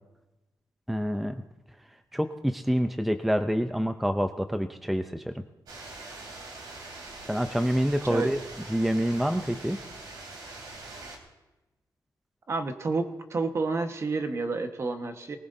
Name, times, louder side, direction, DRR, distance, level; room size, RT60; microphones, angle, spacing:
voice 1, 0.9-1.4 2.1-5.4 7.3-8.4 8.7-9.8, equal, ahead, 7 dB, 0.5 m, -27 dB
sound 1, 5.7-11.2, right 2 dB, 75° right, 3.2 m, -43 dB
voice 2, 12.5-13.0 13.3-15.4, right 3 dB, 40° right, 6 dB, 1.3 m, -29 dB
20.5 x 19.0 x 2.7 m, 1.0 s
wide cardioid pair, 130°, 7 cm